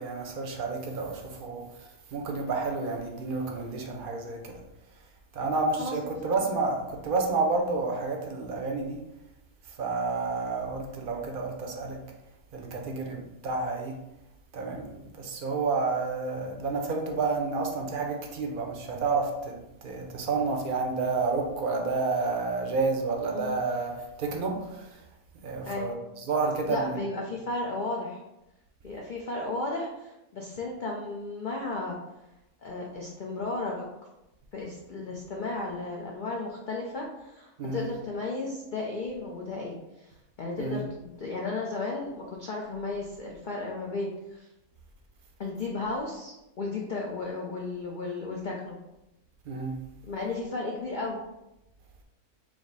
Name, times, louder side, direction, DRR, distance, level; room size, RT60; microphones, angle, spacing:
voice 1, 0.0-1.6 2.1-4.5 5.3-9.0 9.8-12.0 12.5-14.0 14.5-19.5 19.8-23.9 24.2-24.9 25.4-25.9 26.3-27.0 37.6-37.8 40.6-40.8 49.5-49.8, right 3 dB, 55° right, 2 dB, 0.6 m, -30 dB
voice 2, 26.7-28.2 28.8-32.0 32.6-33.9 34.5-44.5 45.4-48.8 50.0-51.2, left 3 dB, 85° left, -1 dB, 0.4 m, -34 dB
5.0 x 2.0 x 3.9 m, 0.91 s
omnidirectional pair, 1.6 m